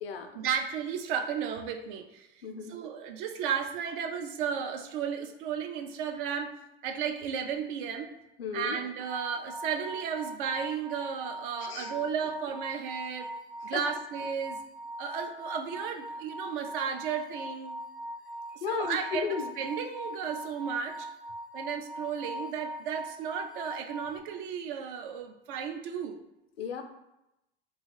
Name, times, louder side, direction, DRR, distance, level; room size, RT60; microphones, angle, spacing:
voice 1, 0.4-2.3 2.6-6.5 6.8-8.1 8.5-13.3 13.6-14.6 15.0-17.8 18.7-21.1 21.5-26.2, right 7 dB, 60° right, 4 dB, 0.5 m, -34 dB
voice 2, 2.4-2.7 8.4-8.8 11.6-11.9 13.7-13.8 18.6-19.5 26.6-26.8, left 6 dB, 80° left, 5 dB, 0.5 m, -34 dB
sound 1, 9.0-24.2, equal, 5° right, 0.5 m, -41 dB
2.7 x 2.3 x 3.2 m, 0.90 s
figure-of-eight pair, 75°, 30 cm